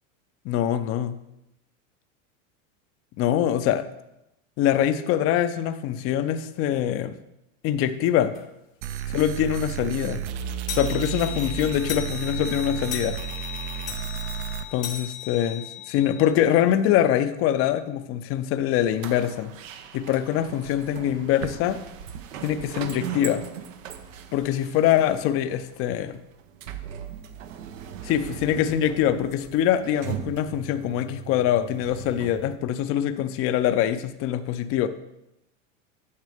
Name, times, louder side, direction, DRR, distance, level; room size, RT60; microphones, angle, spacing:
voice 1, 0.4-1.2 3.2-3.8 4.6-7.1 7.6-8.3 9.1-10.2 10.7-13.2 14.7-19.5 19.9-21.8 22.4-23.4 24.3-26.2 28.0-34.9, left 11 dB, 35° left, 10 dB, 0.5 m, -24 dB
sound 1, 8.3-8.5 9.0-9.1 9.4-9.5 9.8-16.3, left 10 dB, 90° left, 1.1 m, -37 dB
sound 2, 8.8-14.6, right 10 dB, 55° right, 0.6 m, -32 dB
sound 3, 18.9-32.6, right 9 dB, 85° right, 0.8 m, -39 dB
9.5 x 6.6 x 3.5 m, 0.88 s
supercardioid pair, 115°, 39 cm